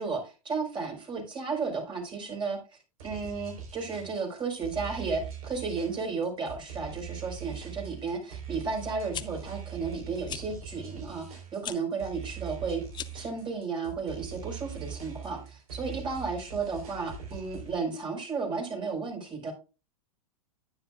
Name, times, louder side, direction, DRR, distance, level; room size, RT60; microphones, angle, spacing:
voice 1, 0.0-2.6 3.0-12.8 13.1-19.5, right 4 dB, 25° right, 1 dB, 5.0 m, -33 dB
sound 1, 3.0-17.8, right 7 dB, 70° right, 4.3 m, -42 dB
sound 2, 9.1-9.2 10.2-10.4 11.6-11.8 12.9-13.3, left 9 dB, 25° left, 0.6 m, -37 dB
10.0 x 9.9 x 2.4 m, 0.30 s
hypercardioid pair, 100°, 19 cm